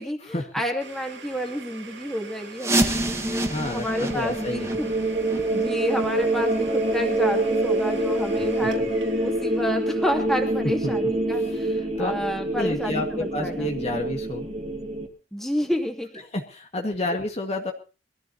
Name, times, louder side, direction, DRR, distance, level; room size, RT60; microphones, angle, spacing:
voice 1, 0.0-3.4 3.7-4.9 5.5-8.9 9.2-13.7 15.3-16.1, equal, ahead, 2 dB, 2.4 m, -30 dB
Domestic sounds home sounds, 0.8-12.5, right 3 dB, 85° right, 3.5 m, -44 dB
sound 1, 2.6-8.2 8.5-8.6 9.2-9.3 9.9-10.0 10.5-10.6, right 1 dB, 15° right, 1.6 m, -30 dB
sound 2, 3.1-15.1, right 1 dB, 35° right, 2.4 m, -26 dB
voice 2, 3.5-4.8 10.8-10.9 11.3-12.1 12.6-14.5 16.3-17.7, left 2 dB, 35° left, 2 dB, 1.7 m, -30 dB
23.0 x 14.5 x 2.8 m, 0.32 s
head